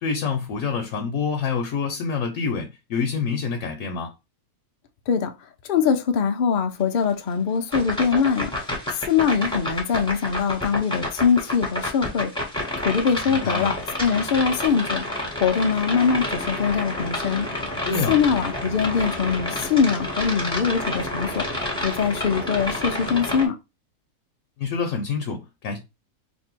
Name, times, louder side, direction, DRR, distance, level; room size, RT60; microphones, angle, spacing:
voice 1, 0.0-4.1 13.3-13.7 17.9-18.2 24.6-25.8, left 5 dB, 65° left, 1.0 m, -27 dB
voice 2, 5.7-12.3 12.8-17.5 18.1-21.4 21.8-23.6, left 6 dB, 85° left, 0.4 m, -23 dB
sound 1, 7.7-23.5, left 1 dB, 5° left, 1.1 m, -29 dB
2.9 x 2.7 x 4.4 m
omnidirectional pair, 1.7 m